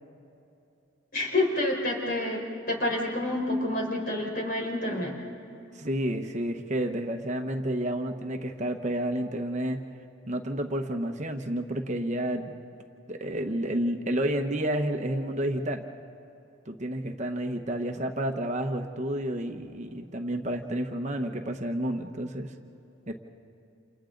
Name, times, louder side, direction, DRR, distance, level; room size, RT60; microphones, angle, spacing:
voice 1, 1.1-5.1, left 1 dB, 45° left, 0 dB, 4.5 m, -28 dB
voice 2, 5.7-9.8 10.3-12.5 13.1-15.8 16.7-22.5 23.1-23.2, right 1 dB, 35° right, 5 dB, 1.0 m, -30 dB
29.5 x 28.5 x 3.9 m, 2.7 s
head